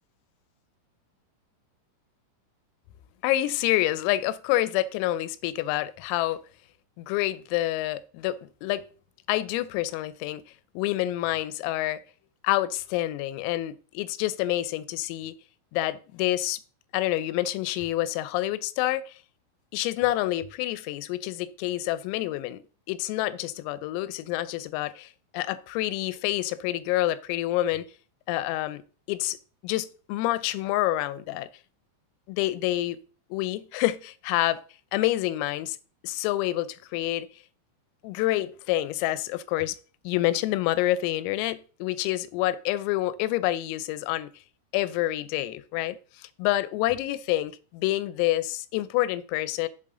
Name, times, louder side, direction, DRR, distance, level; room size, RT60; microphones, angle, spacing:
voice 1, 3.2-6.4 7.0-8.9 9.3-10.4 10.8-12.0 12.4-15.3 15.7-16.6 16.9-19.2 19.7-22.6 22.9-27.9 28.3-28.8 29.1-29.4 29.6-31.5 32.3-33.0 33.3-34.6 34.9-35.8 36.0-37.3 38.0-39.8 40.0-44.3 44.7-49.7, left 15 dB, 85° left, 3.3 m, -27 dB
7.5 x 7.3 x 3.7 m
omnidirectional pair, 6.0 m